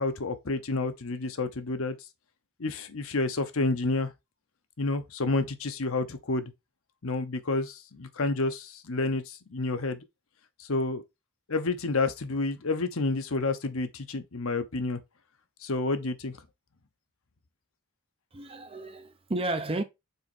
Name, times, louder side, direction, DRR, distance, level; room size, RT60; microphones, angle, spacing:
voice 1, 0.0-2.0 2.6-4.1 4.8-6.5 7.0-10.0 10.6-11.0 11.5-15.0 15.6-16.4, left 3 dB, 65° left, 0.9 m, -29 dB
voice 2, 18.3-19.8, right 2 dB, 25° right, 0.7 m, -32 dB
5.5 x 4.2 x 4.3 m
head